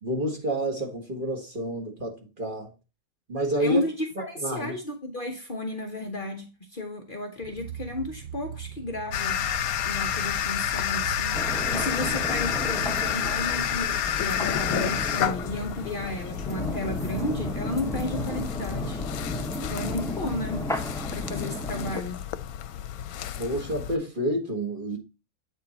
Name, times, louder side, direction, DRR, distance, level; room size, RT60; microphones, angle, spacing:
voice 1, 0.0-2.7 3.3-3.8 4.2-4.8 23.4-25.0, right 1 dB, 35° right, 1.8 m, -29 dB
voice 2, 3.6-9.5 9.9-19.0 19.7-20.7 21.1-22.2, left 1 dB, 40° left, 1.1 m, -33 dB
sound 1, 7.4-13.9, right 9 dB, 55° right, 0.7 m, -40 dB
sound 2, 9.1-24.0, left 10 dB, 85° left, 1.1 m, -30 dB
sound 3, 11.3-22.0, left 1 dB, 5° left, 0.6 m, -33 dB
8.2 x 3.7 x 4.1 m
omnidirectional pair, 1.5 m